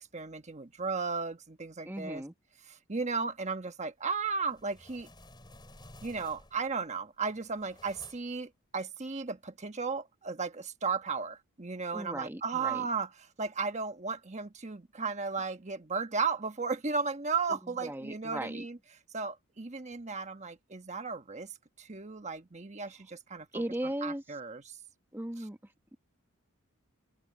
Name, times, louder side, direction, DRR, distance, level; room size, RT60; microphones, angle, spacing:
voice 1, 0.1-2.2 2.7-5.1 6.0-13.1 13.4-18.8 19.1-23.6 24.0-24.8, right 4 dB, 30° right, 1.2 m, -35 dB
voice 2, 1.8-2.3 11.9-12.9 17.5-18.7 23.5-24.2 25.1-26.0, right 1 dB, 10° right, 1.1 m, -38 dB
sound 1, 4.3-6.7 7.2-8.5, left 1 dB, 20° left, 5.0 m, -54 dB
open air
head